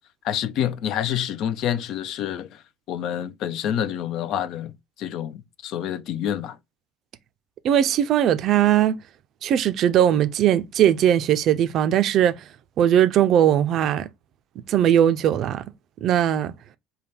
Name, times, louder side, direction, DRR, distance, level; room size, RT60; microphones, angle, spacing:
voice 1, 0.2-2.6 2.9-4.7 5.0-6.6, left 10 dB, 55° left, 0.4 m, -27 dB
voice 2, 7.6-9.0 9.4-12.4 12.8-14.1 14.7-15.6 16.0-16.5, right 10 dB, 50° right, 0.4 m, -19 dB
3.9 x 2.2 x 3.4 m
hypercardioid pair, 65°, 0 cm